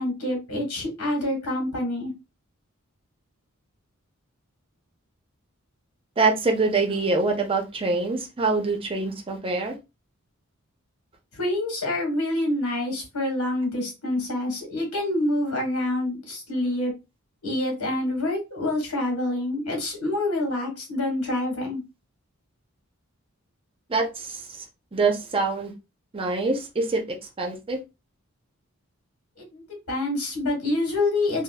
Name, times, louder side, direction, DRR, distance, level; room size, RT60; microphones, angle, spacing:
voice 1, 0.0-2.1 11.3-16.9 17.4-21.8 29.4-29.6 29.9-31.4, left 1 dB, 80° left, 0 dB, 1.3 m, -27 dB
voice 2, 6.2-9.8 23.9-24.6 24.9-25.7 26.1-27.0 27.4-27.8, right 3 dB, 25° right, 3 dB, 0.5 m, -25 dB
5.1 x 2.0 x 2.2 m, 0.25 s
head